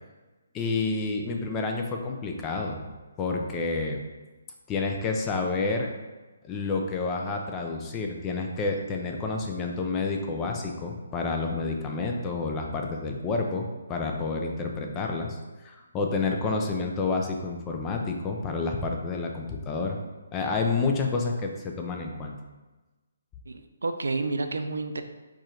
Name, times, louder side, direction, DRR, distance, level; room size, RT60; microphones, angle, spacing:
voice 1, 0.5-2.8 3.2-4.0 4.7-5.9 6.4-15.4 15.6-20.0 20.3-22.4, left 3 dB, 15° left, 2 dB, 0.4 m, -29 dB
voice 2, 23.5-25.0, right 3 dB, 90° right, 8 dB, 0.4 m, -30 dB
4.7 x 2.5 x 4.3 m, 1.2 s
hypercardioid pair, 165°, 0 cm